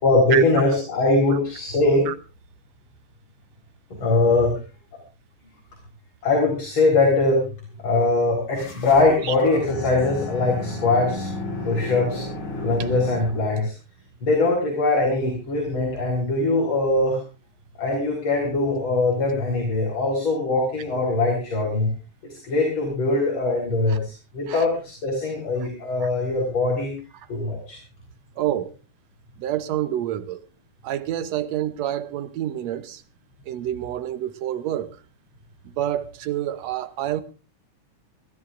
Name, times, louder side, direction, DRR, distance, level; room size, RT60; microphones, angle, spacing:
voice 1, 0.0-2.1 4.0-4.5 6.2-7.4 7.8-11.3 11.6-12.2 12.6-13.7 14.2-17.2 17.8-21.9 22.2-26.9 27.3-27.8, left 2 dB, 40° left, 5.0 m, -21 dB
sound 1, 8.5-13.5, left 2 dB, 90° left, 5.1 m, -33 dB
voice 2, 28.4-28.7 29.4-30.5 30.8-33.0 33.5-35.0 35.7-37.2, right 12 dB, 70° right, 1.9 m, -28 dB
28.0 x 13.0 x 2.6 m
omnidirectional pair, 3.4 m